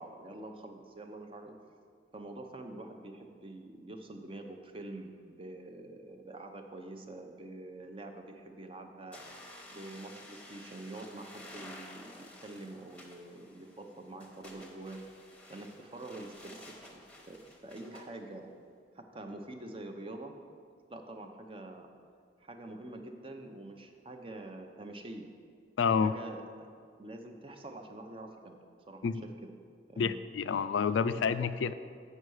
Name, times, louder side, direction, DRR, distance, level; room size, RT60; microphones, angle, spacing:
voice 1, 0.0-1.5 2.1-9.2 9.7-15.0 15.5-18.5 18.9-20.3 20.9-21.9 22.4-25.3 25.9-26.7 27.0-28.6 28.9-29.5 29.9-30.2, right 2 dB, 30° right, 5 dB, 0.6 m, -46 dB
sound 1, 9.1-18.1, left 1 dB, 5° left, 0.9 m, -52 dB
voice 2, 25.8-26.1 29.0-29.2 30.0-31.7, left 6 dB, 85° left, 12 dB, 0.4 m, -29 dB
8.1 x 5.5 x 6.3 m, 2.2 s
head